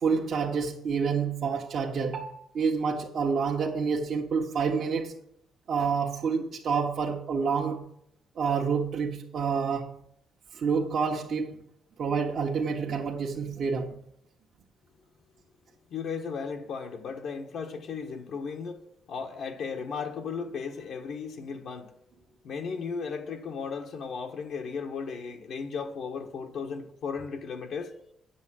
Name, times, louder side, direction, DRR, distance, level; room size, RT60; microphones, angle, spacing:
voice 1, 0.0-5.1 5.7-7.9 8.4-10.0 10.5-11.6 12.0-14.0, right 5 dB, 60° right, 1.3 m, -28 dB
voice 2, 15.9-18.8 19.1-21.9 22.4-27.9, left 5 dB, 70° left, 1.5 m, -35 dB
9.4 x 7.4 x 7.6 m
cardioid pair, 90°, 0 cm